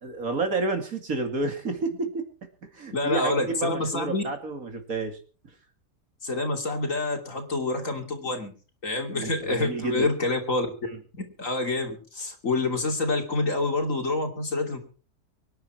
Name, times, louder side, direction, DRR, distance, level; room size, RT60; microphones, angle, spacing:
voice 1, 0.0-2.3 2.7-5.2 9.1-10.1 10.9-11.0, right 3 dB, 55° right, 6 dB, 2.7 m, -30 dB
voice 2, 2.9-4.2 6.2-8.5 8.8-10.7 11.4-14.8, left 2 dB, 50° left, 4 dB, 3.2 m, -27 dB
24.5 x 10.5 x 4.5 m, 0.38 s
omnidirectional pair, 1.8 m